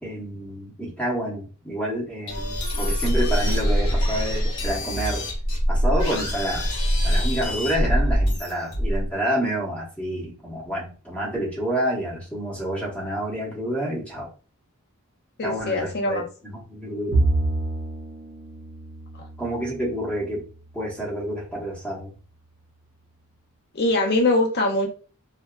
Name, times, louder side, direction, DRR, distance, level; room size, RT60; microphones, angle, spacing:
voice 1, 0.0-5.3 5.7-6.7 7.0-14.3 15.4-17.3 19.4-20.4 20.7-22.1, right 1 dB, 5° left, -4 dB, 0.9 m, -28 dB
sound 1, 2.3-9.1, equal, 75° left, 0.9 m, -23 dB
voice 2, 15.4-16.3 19.2-19.3 23.7-24.9, left 2 dB, 45° left, 2 dB, 0.6 m, -22 dB
Bowed string instrument, 17.1-20.6, right 2 dB, 45° right, 0.7 m, -27 dB
2.6 x 2.3 x 2.2 m, 0.37 s
head